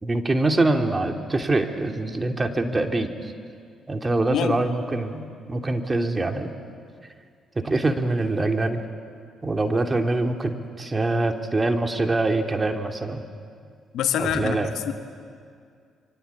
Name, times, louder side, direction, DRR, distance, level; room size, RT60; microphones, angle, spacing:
voice 1, 0.0-3.3 3.9-6.5 7.5-8.8 9.4-13.2 14.2-14.7, right 2 dB, 25° right, 4 dB, 2.9 m, -24 dB
voice 2, 4.3-4.6 13.9-14.9, left 10 dB, 75° left, 7 dB, 1.6 m, -26 dB
26.0 x 23.5 x 8.5 m, 2.2 s
supercardioid pair, 55°, 0 cm